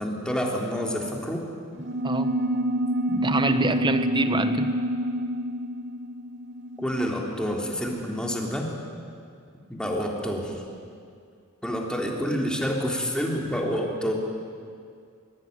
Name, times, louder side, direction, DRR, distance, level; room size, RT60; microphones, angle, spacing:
voice 1, 0.0-1.4 4.4-4.5 6.8-8.7 9.7-10.6 11.6-14.1, equal, 5° left, 0 dB, 3.5 m, -28 dB
sound 1, 1.7-7.7, equal, 60° right, 3.1 m, -27 dB
voice 2, 2.0-2.4 3.1-4.7, right 2 dB, 25° right, 9 dB, 1.3 m, -26 dB
22.5 x 22.5 x 9.6 m, 2.3 s
head